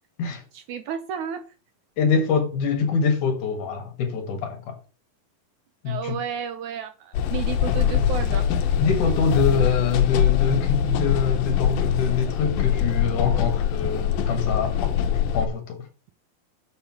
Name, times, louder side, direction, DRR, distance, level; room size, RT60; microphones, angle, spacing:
voice 1, 0.5-1.4 5.9-8.5, right 8 dB, 75° right, 1.9 m, -32 dB
voice 2, 2.0-4.8 5.8-6.2 8.8-15.0 15.3-15.9, left 5 dB, 65° left, 3.0 m, -24 dB
sound 1, 7.1-15.5, left 9 dB, 85° left, 2.7 m, -23 dB
6.9 x 5.6 x 7.1 m
omnidirectional pair, 4.0 m